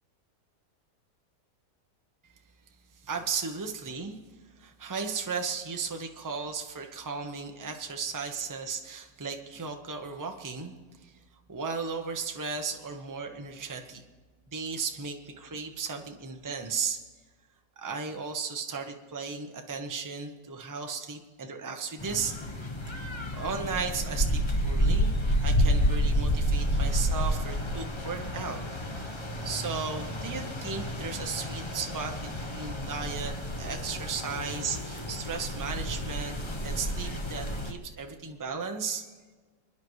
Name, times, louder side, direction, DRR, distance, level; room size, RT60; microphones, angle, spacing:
voice 1, 3.0-4.2 4.6-10.7 11.0-11.2 11.5-14.0 14.5-17.0 17.8-22.3 23.3-25.1 25.4-28.6 29.4-36.4 36.6-39.0, right 5 dB, 15° right, 4 dB, 0.7 m, -35 dB
sound 1, 22.0-37.7, equal, 25° left, 0.6 m, -30 dB
29.5 x 10.0 x 3.2 m, 1.4 s
omnidirectional pair, 1.9 m